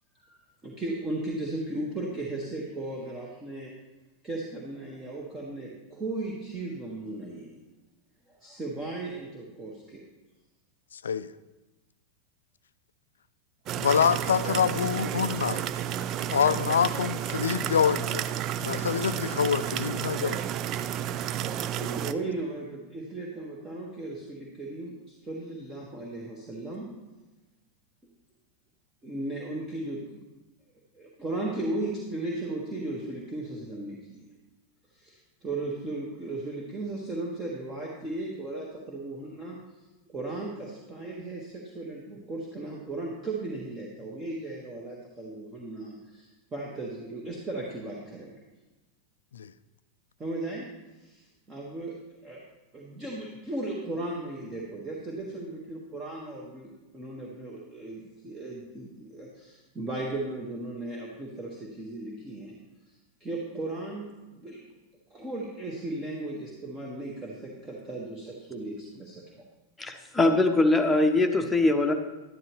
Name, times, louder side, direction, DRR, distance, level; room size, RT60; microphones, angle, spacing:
voice 1, 0.2-3.7 4.2-7.5 8.3-10.0 21.5-26.9 29.0-30.0 30.9-34.2 34.9-39.6 40.1-48.3 50.2-50.7 51.0-52.0 52.2-52.4 52.7-62.6 63.2-64.6 65.1-69.2, right 2 dB, 20° right, -2 dB, 1.4 m, -36 dB
sound 1, 13.7-22.1, right 10 dB, 35° right, 0.3 m, -31 dB
voice 2, 13.8-15.6 16.3-18.2 18.6-20.4 49.3-49.5, left 7 dB, 65° left, 15 dB, 0.4 m, -26 dB
voice 3, 69.8-71.9, left 2 dB, 10° left, 4 dB, 1.0 m, -22 dB
11.5 x 10.5 x 3.1 m, 1.1 s
figure-of-eight pair, 90°, 0 cm